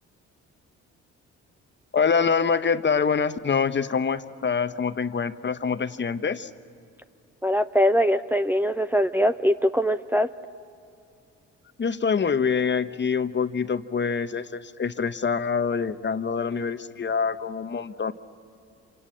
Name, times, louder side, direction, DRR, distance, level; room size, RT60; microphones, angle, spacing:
voice 1, 1.9-6.5 11.8-18.1, left 6 dB, 35° left, 11 dB, 1.1 m, -25 dB
voice 2, 7.4-10.3, equal, 5° right, 8 dB, 0.6 m, -22 dB
27.0 x 25.0 x 8.6 m, 2.4 s
supercardioid pair, 65°, 30 cm